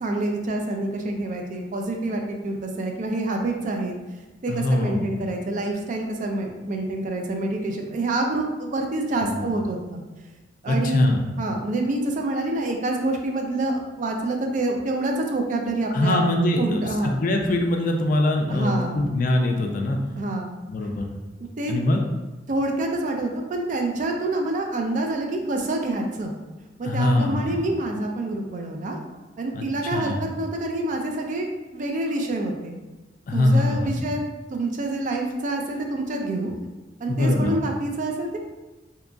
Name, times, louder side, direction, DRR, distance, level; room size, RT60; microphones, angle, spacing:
voice 1, 0.0-3.9 4.4-10.0 10.6-11.1 11.4-16.2 16.6-17.2 18.5-19.1 20.2-20.6 21.6-21.7 22.5-26.4 26.8-29.0 29.4-32.8 33.3-34.2 34.5-36.5 37.0-38.4, right 2 dB, 45° right, 2 dB, 0.3 m, -27 dB
voice 2, 4.5-5.0 9.2-9.5 10.7-11.2 15.9-20.0 20.7-21.1 21.7-22.0 26.8-27.6 29.5-29.6 29.9-30.2 33.3-33.9 37.1-37.6, left 1 dB, 45° left, 3 dB, 0.3 m, -23 dB
2.8 x 2.5 x 2.3 m, 1.1 s
head